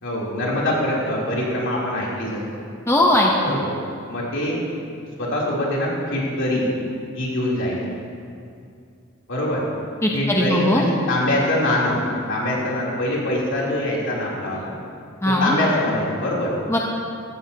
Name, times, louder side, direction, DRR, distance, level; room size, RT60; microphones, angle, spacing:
voice 1, 0.0-2.4 3.4-3.7 4.1-4.6 5.2-6.7 7.1-7.8 9.3-9.6 10.1-12.0 12.3-14.7 15.4-16.5, left 1 dB, 65° left, -5 dB, 3.4 m, -23 dB
voice 2, 2.9-3.6 10.0-10.8 15.2-15.5 16.7-16.8, left 1 dB, 15° left, -1 dB, 0.9 m, -19 dB
16.0 x 15.0 x 2.9 m, 2.4 s
head